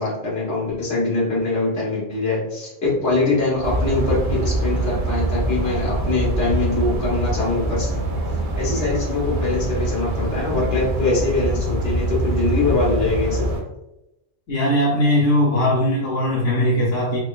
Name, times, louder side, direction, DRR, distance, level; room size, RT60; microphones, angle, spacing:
voice 1, 0.0-8.2 8.6-13.6, left 2 dB, 70° left, -6 dB, 1.7 m, -23 dB
sound 1, 2.8-11.9, right 5 dB, 85° right, 1.0 m, -40 dB
sound 2, 3.6-13.6, right 1 dB, 50° right, 0.7 m, -24 dB
voice 2, 14.5-17.2, equal, 90° left, -6 dB, 1.2 m, -19 dB
4.4 x 2.3 x 2.4 m, 0.90 s
omnidirectional pair, 1.2 m